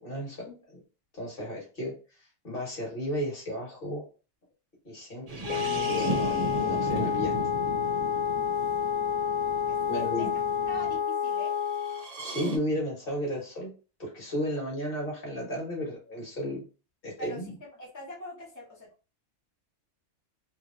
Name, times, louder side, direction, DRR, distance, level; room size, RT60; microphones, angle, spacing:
voice 1, 0.0-0.8 1.1-1.9 2.4-4.0 4.8-7.3 9.9-10.3 12.2-13.7 14.0-16.6 17.0-17.5, equal, 45° left, -3 dB, 1.5 m, -34 dB
sound 1, 5.3-11.0 11.8-12.6, right 2 dB, 40° right, 0.6 m, -36 dB
Wind instrument woodwind instrument, 5.4-12.1, left 8 dB, 90° left, 1.3 m, -29 dB
voice 2, 9.7-10.3 10.7-11.5 14.5-14.6 17.2-17.4 17.8-18.9, equal, 15° left, -4 dB, 0.9 m, -42 dB
3.0 x 2.8 x 2.5 m, 0.34 s
omnidirectional pair, 1.3 m